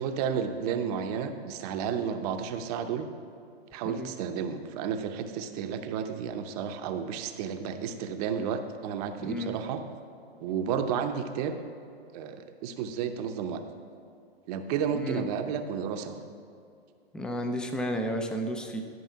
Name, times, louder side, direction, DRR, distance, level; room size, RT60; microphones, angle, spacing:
voice 1, 0.0-3.1 3.7-9.8 10.4-11.6 12.1-13.6 14.5-16.2, right 7 dB, 40° right, 7 dB, 0.8 m, -32 dB
voice 2, 9.2-9.6 14.9-15.2 17.1-18.8, equal, 5° left, 5 dB, 0.4 m, -32 dB
12.5 x 5.5 x 5.7 m, 2.5 s
hypercardioid pair, 125°, 31 cm